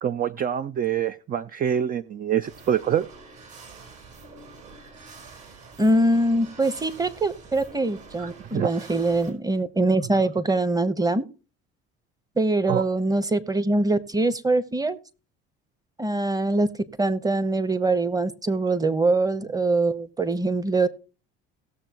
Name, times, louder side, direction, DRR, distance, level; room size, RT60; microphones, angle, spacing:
voice 1, 0.0-3.1 8.2-8.9 12.7-12.8, right 9 dB, 30° right, 0.5 m, -26 dB
sound 1, 2.4-9.3, right 4 dB, 55° right, 4.5 m, -46 dB
voice 2, 5.8-11.2 12.4-15.0 16.0-16.7 17.0-20.9, right 2 dB, 10° right, 1.0 m, -23 dB
17.5 x 6.8 x 3.0 m
hypercardioid pair, 75°, 31 cm